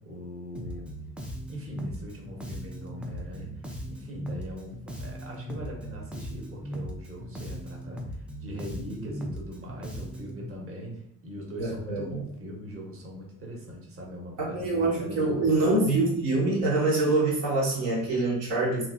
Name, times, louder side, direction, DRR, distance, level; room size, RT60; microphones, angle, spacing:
voice 1, 0.0-1.0 1.5-8.0 8.4-15.8, equal, 30° right, -1 dB, 1.0 m, -41 dB
Bass guitar, 0.5-10.4, equal, 5° right, 0.3 m, -38 dB
voice 2, 11.6-12.2 14.4-18.9, right 2 dB, 70° right, -4 dB, 1.0 m, -25 dB
2.9 x 2.4 x 2.5 m, 0.72 s
figure-of-eight pair, 45°, 45 cm